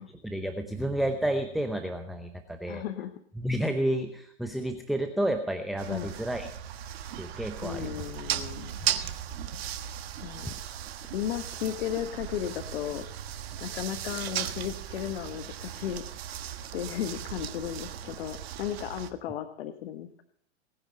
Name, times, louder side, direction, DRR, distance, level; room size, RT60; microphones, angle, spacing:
voice 1, 0.2-2.8 3.4-6.5 7.2-8.1 10.5-10.6, right 1 dB, ahead, 6 dB, 0.7 m, -31 dB
voice 2, 2.7-3.1 5.9-6.1 7.6-8.8 10.2-10.5 11.1-13.1 13.6-16.0 16.7-20.1, left 11 dB, 55° left, 10 dB, 1.2 m, -35 dB
sound 1, 5.8-19.1, right 10 dB, 55° right, 1.4 m, -37 dB
19.0 x 10.0 x 5.3 m, 0.63 s
hypercardioid pair, 115°, 36 cm